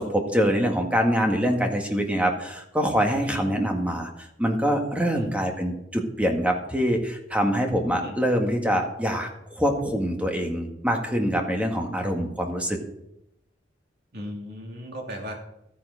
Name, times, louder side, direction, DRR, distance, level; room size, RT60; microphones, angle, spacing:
voice 1, 0.0-4.1 4.4-12.8, equal, 10° right, 2 dB, 1.8 m, -24 dB
voice 2, 14.1-15.4, equal, 60° right, 0 dB, 2.8 m, -37 dB
13.5 x 9.7 x 4.9 m, 0.82 s
head